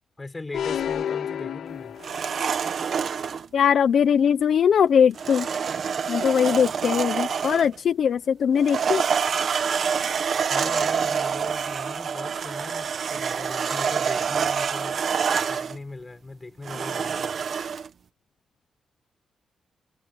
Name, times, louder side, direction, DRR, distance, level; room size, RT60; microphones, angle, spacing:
voice 1, 0.2-2.0 10.5-15.0 15.5-17.4, left 3 dB, 15° left, 5.3 m, -39 dB
sound 1, 0.5-2.5, left 9 dB, 85° left, 3.3 m, -30 dB
object pushed on table (can), 2.0-3.5 5.2-7.8 8.6-15.8 16.6-17.9, right 6 dB, 50° right, 1.3 m, -27 dB
voice 2, 3.5-5.5 6.1-9.0, left 7 dB, 55° left, 0.8 m, -20 dB
wide cardioid pair, 170°, 0 cm